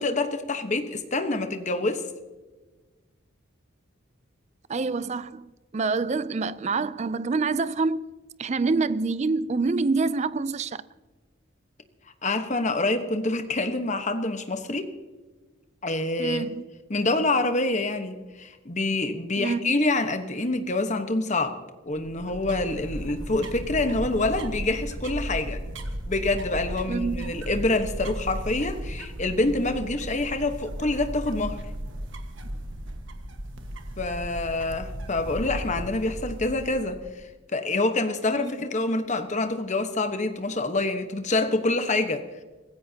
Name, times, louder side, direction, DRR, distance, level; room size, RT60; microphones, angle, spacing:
voice 1, 0.0-2.0 12.2-14.9 15.8-16.5 16.9-21.5 21.9-25.6 26.1-31.6 34.0-37.0 37.5-42.2, left 2 dB, 35° left, 1.2 m, -26 dB
voice 2, 4.7-8.0 8.4-10.8 16.2-16.6 19.4-19.8 26.9-27.3 38.4-38.5, right 4 dB, 30° right, 0.4 m, -26 dB
sound 1, 21.9-37.2, equal, 65° right, 1.5 m, -36 dB
25.5 x 15.5 x 2.9 m
head